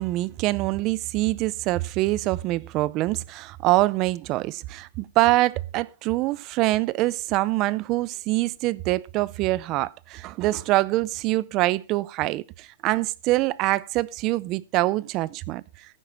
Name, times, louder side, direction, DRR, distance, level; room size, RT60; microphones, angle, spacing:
voice 1, 0.0-15.6, right 18 dB, 25° right, 0.5 m, -24 dB
15.5 x 9.3 x 3.4 m
hypercardioid pair, 170°, 0 cm